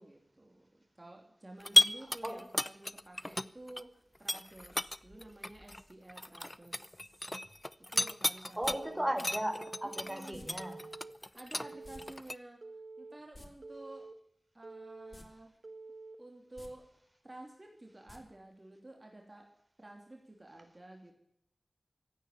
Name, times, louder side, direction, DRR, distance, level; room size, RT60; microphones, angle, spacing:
voice 1, 0.0-7.3 7.9-9.1 9.8-10.5 11.3-12.6 13.0-14.1 14.5-15.5 16.2-16.9 17.2-19.5 19.8-21.1, right 1 dB, 35° right, 1 dB, 3.0 m, -52 dB
sound 1, 1.6-3.8 4.2-8.8 9.2-12.4, left 1 dB, 20° left, 0.6 m, -33 dB
sound 2, 8.6-8.8 10.3-10.5 11.8-12.0 12.3-12.4 13.2-13.5 15.1-15.3 15.6-15.7 16.5-16.7 18.1-18.2 18.5-18.6, left 1 dB, 35° left, 2.8 m, -52 dB
voice 2, 8.6-10.8, right 1 dB, 15° right, 5 dB, 3.8 m, -36 dB
Telephone, 8.6-9.1 9.6-10.1 10.6-11.1 11.6-12.1 12.6-13.1 13.6-14.1 14.6-15.1 15.6-16.1, right 3 dB, 80° right, 1.8 m, -48 dB
15.5 x 9.3 x 9.7 m, 0.72 s
wide cardioid pair, 75°, 0 cm